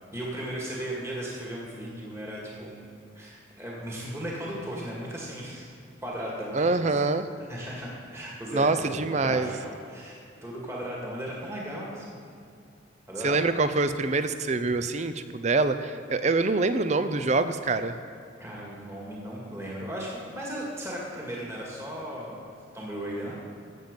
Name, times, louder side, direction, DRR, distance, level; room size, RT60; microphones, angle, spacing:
voice 1, 0.1-2.8 3.1-5.6 6.0-7.0 7.5-12.4 13.1-13.4 18.4-23.3, right 1 dB, 15° right, -4 dB, 2.0 m, -36 dB
voice 2, 6.5-7.3 8.5-9.5 13.2-17.9, right 3 dB, 35° right, 11 dB, 0.5 m, -25 dB
15.5 x 7.3 x 5.3 m, 2.5 s
head